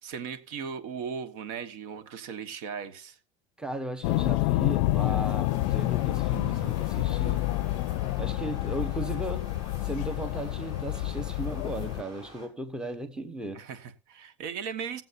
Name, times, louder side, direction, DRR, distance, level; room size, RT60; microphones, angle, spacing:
voice 1, 0.0-3.2 13.5-15.0, right 6 dB, 65° right, 1.3 m, -37 dB
voice 2, 3.6-7.4 8.2-9.5 9.8-13.6, right 2 dB, 5° right, 1.1 m, -36 dB
sound 1, 4.0-12.0, left 18 dB, 75° left, 0.4 m, -28 dB
sound 2, 5.4-12.5, right 1 dB, 25° right, 4.6 m, -49 dB
19.0 x 7.5 x 2.6 m
supercardioid pair, 135°, 16 cm